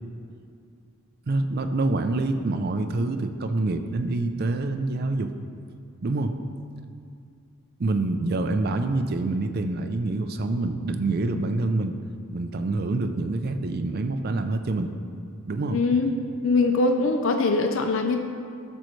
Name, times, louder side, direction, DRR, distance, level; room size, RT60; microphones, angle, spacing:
voice 1, 1.3-5.3 6.0-6.3 7.8-12.0 12.3-14.9 15.4-15.8, right 2 dB, 45° right, 7 dB, 0.4 m, -26 dB
voice 2, 15.7-16.1 16.4-18.2, left 3 dB, 60° left, 5 dB, 0.5 m, -22 dB
12.5 x 6.3 x 3.2 m, 2.4 s
head